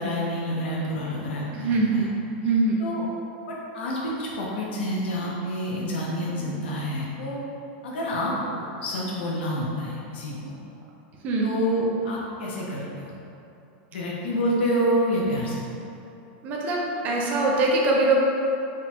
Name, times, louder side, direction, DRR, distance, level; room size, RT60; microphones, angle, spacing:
voice 1, 0.0-2.1 2.8-3.0 3.5-7.4 7.8-10.6 11.4-13.2 13.9-15.6, equal, 90° left, -4 dB, 1.0 m, -28 dB
voice 2, 1.5-2.1 2.4-2.9 11.2-11.5 16.4-18.2, right 2 dB, 30° right, -2 dB, 0.6 m, -23 dB
3.7 x 2.3 x 4.4 m, 2.9 s
supercardioid pair, 165°, 6 cm